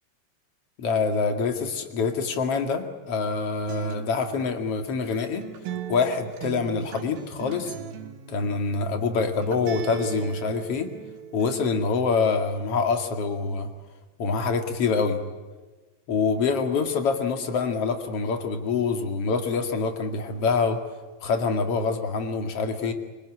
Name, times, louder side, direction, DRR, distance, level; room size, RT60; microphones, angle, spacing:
voice 1, 0.8-5.4 5.9-7.7 8.3-10.9 11.3-13.7 14.2-15.2 16.1-20.8 21.2-22.9, left 4 dB, 45° left, 6 dB, 2.8 m, -25 dB
Acoustic guitar, 3.7-11.7, right 9 dB, 80° right, 3.5 m, -38 dB
24.5 x 24.5 x 9.9 m, 1.3 s
omnidirectional pair, 4.2 m